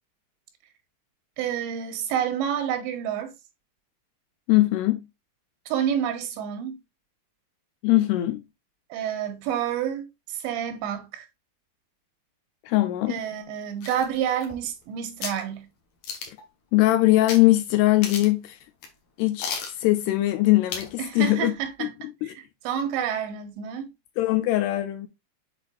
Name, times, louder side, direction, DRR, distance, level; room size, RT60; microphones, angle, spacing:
voice 1, 1.4-3.3 5.7-6.8 8.9-11.3 13.1-15.7 21.0-21.9 22.2-22.3 22.6-23.9, right 9 dB, 85° right, 3.4 m, -29 dB
voice 2, 4.5-5.0 7.8-8.4 12.6-13.2 16.3-16.4 16.7-18.6 19.2-21.5 21.8-22.3 24.2-25.1, left 17 dB, 80° left, 2.5 m, -21 dB
sound 1, 13.8-14.8 15.2-15.4 16.0-16.5 17.3-17.4 17.7-17.8 18.0-18.4 18.8-18.9 19.4-19.8 20.7-21.0 21.3-21.4, left 5 dB, 60° left, 2.0 m, -34 dB
7.9 x 4.7 x 2.6 m
omnidirectional pair, 5.1 m